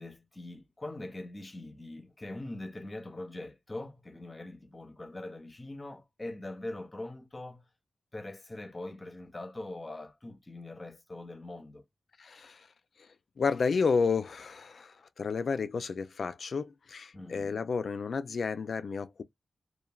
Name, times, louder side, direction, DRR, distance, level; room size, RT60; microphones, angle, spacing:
voice 1, 0.0-7.7 8.1-11.8 17.1-17.6, left 2 dB, 25° left, 0.6 m, -42 dB
voice 2, 12.2-12.7 13.0-13.1 13.4-19.2, left 5 dB, 65° left, 0.3 m, -31 dB
3.1 x 2.1 x 2.2 m
wide cardioid pair, 100°, 0 cm